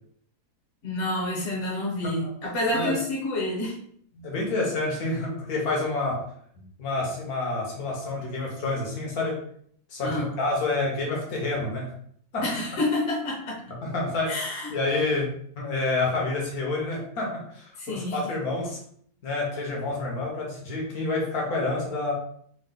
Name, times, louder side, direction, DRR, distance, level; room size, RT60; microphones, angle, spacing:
voice 1, 0.8-3.8 10.0-10.3 12.4-13.6 14.3-14.8 17.8-18.2, left 1 dB, 50° left, -4 dB, 1.2 m, -28 dB
voice 2, 4.1-6.2 6.8-9.4 9.9-11.9 12.3-12.4 13.8-14.4 14.7-18.8 19.2-22.1, left 2 dB, 70° left, -2 dB, 1.7 m, -28 dB
3.8 x 2.5 x 3.8 m, 0.63 s
omnidirectional pair, 1.7 m